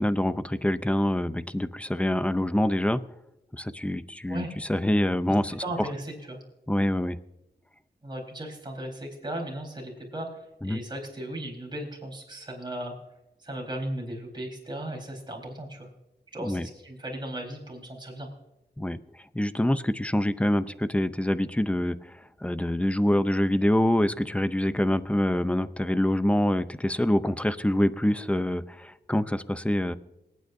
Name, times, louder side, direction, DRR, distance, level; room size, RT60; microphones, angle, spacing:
voice 1, 0.0-3.0 3.5-5.9 6.7-7.2 10.6-10.8 16.4-16.7 18.8-19.0 19.3-29.9, left 1 dB, 5° left, 13 dB, 0.5 m, -25 dB
voice 2, 5.6-6.4 8.0-12.9 13.4-15.9 16.3-18.3, right 1 dB, 25° right, 0 dB, 4.2 m, -36 dB
27.0 x 9.3 x 2.7 m, 0.92 s
wide cardioid pair, 130°, 18 cm